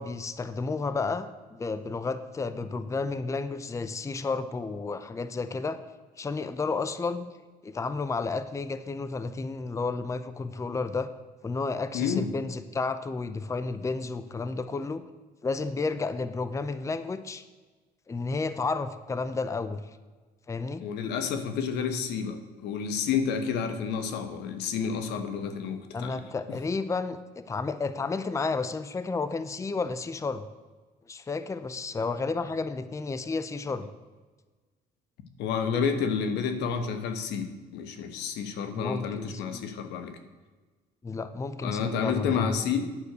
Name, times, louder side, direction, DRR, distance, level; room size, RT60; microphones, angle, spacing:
voice 1, 0.0-5.8 6.2-7.3 7.6-11.1 11.4-15.0 15.4-17.4 18.1-19.8 20.5-20.8 25.9-30.5 31.1-33.9 38.8-39.7 41.0-42.5, left 4 dB, 20° left, 12 dB, 0.6 m, -32 dB
voice 2, 11.9-12.2 20.8-26.2 35.4-40.2 41.6-42.8, left 6 dB, 85° left, 8 dB, 1.3 m, -30 dB
9.8 x 6.6 x 6.7 m, 1.3 s
cardioid pair, 110°, 17 cm